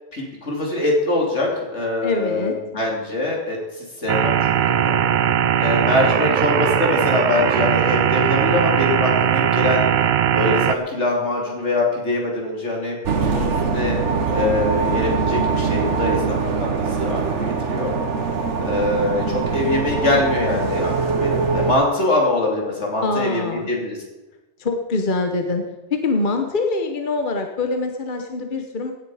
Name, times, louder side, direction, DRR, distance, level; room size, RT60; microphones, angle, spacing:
voice 1, 0.1-5.0 5.6-9.9 10.3-14.0 14.3-16.7 17.0-17.9 18.6-24.0, left 2 dB, 80° left, -1 dB, 3.4 m, -23 dB
voice 2, 2.0-2.6 23.0-23.7 24.6-25.6 25.9-28.9, left 3 dB, 45° left, 5 dB, 1.2 m, -24 dB
sound 1, 4.1-10.8, right 9 dB, 55° right, 0.6 m, -19 dB
sound 2, 13.0-21.7, right 5 dB, 85° right, 1.4 m, -22 dB
16.5 x 9.9 x 4.9 m, 1.1 s
omnidirectional pair, 1.2 m